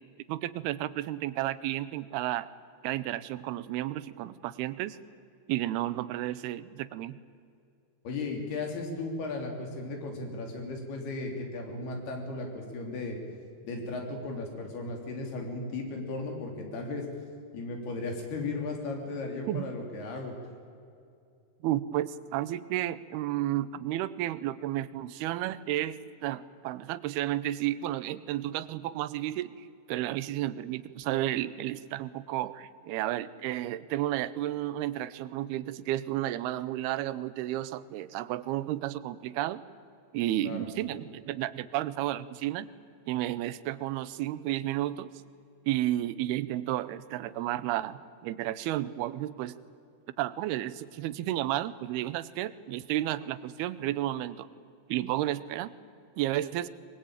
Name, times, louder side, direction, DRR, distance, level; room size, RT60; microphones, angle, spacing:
voice 1, 0.3-2.5 2.8-5.0 5.5-7.2 19.5-19.7 21.6-39.6 40.1-42.7 43.1-45.1 45.7-49.6 50.2-54.5 54.9-55.7 56.2-56.7, right 14 dB, 90° right, 16 dB, 2.8 m, -32 dB
voice 2, 8.1-13.2 13.6-17.1 17.5-20.3 40.4-40.7, left 3 dB, 85° left, 2 dB, 5.4 m, -36 dB
23.0 x 21.5 x 9.0 m, 2.4 s
omnidirectional pair, 4.4 m